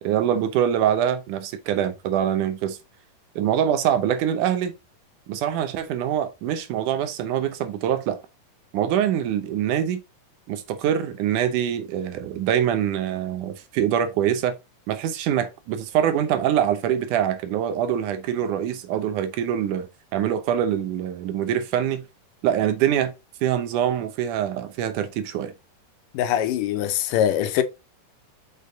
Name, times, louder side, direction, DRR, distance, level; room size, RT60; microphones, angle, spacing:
voice 1, 0.0-2.8 3.4-4.7 5.3-8.2 8.7-10.0 10.5-14.6 14.9-19.9 20.1-22.1 22.4-23.1 23.4-25.5, right 10 dB, 75° right, 2.3 m, -24 dB
voice 2, 26.1-27.6, left 10 dB, 90° left, 2.5 m, -22 dB
6.6 x 5.2 x 3.9 m
omnidirectional pair, 3.8 m